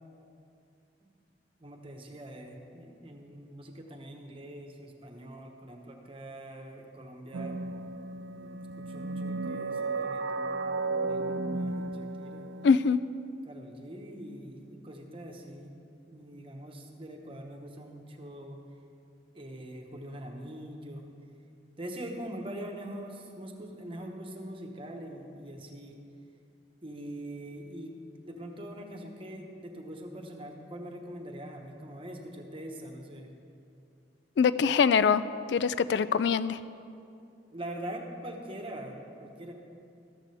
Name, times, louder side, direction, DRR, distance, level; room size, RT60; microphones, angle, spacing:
voice 1, 1.6-7.6 8.0-12.5 13.5-15.7 16.1-18.6 19.3-21.0 21.8-26.0 26.8-28.0 28.2-33.3 37.5-39.5, right 1 dB, 30° right, 3 dB, 1.2 m, -43 dB
sound 1, 7.3-12.8, right 3 dB, 80° right, 0.4 m, -34 dB
voice 2, 12.6-13.0 34.4-35.2 35.5-36.6, left 6 dB, 70° left, 15 dB, 0.3 m, -23 dB
13.5 x 13.5 x 3.4 m, 2.6 s
head